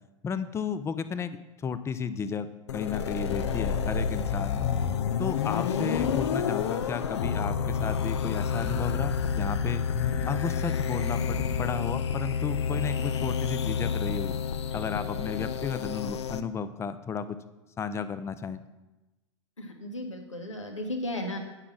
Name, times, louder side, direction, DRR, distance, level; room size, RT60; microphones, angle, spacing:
voice 1, 0.2-2.5 2.7-4.7 5.2-9.9 10.3-14.3 14.7-17.4 17.8-18.6, left 6 dB, 15° left, 13 dB, 0.6 m, -33 dB
sound 1, 2.7-16.4, left 7 dB, 65° left, 0.6 m, -29 dB
sound 2, 3.3-5.1 6.0-6.4 7.3-10.5 11.3-11.7, left 5 dB, 40° left, 1.3 m, -35 dB
voice 2, 19.6-21.4, left 1 dB, 85° left, 3 dB, 1.5 m, -35 dB
9.7 x 6.0 x 6.1 m, 1.1 s
figure-of-eight pair, 90°, 16 cm